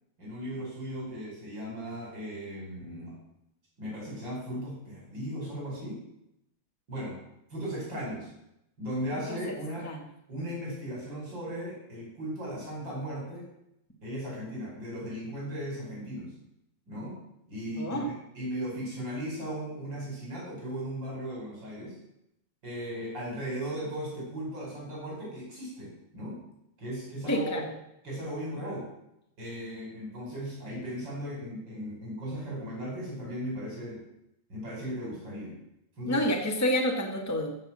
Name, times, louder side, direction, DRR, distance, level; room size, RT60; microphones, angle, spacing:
voice 1, 0.2-3.2 3.8-6.0 6.9-7.2 7.5-8.3 8.8-9.9 10.3-13.5 14.0-16.3 16.9-17.2 17.5-22.0 22.6-26.4 26.8-27.6 28.0-28.9 29.4-34.0 34.5-35.5 36.0-36.3, equal, 90° right, -4 dB, 6.1 m, -37 dB
voice 2, 17.8-18.1 27.3-27.6 36.1-37.5, equal, 10° left, 1 dB, 1.6 m, -28 dB
15.0 x 6.7 x 7.6 m, 0.82 s
omnidirectional pair, 1.9 m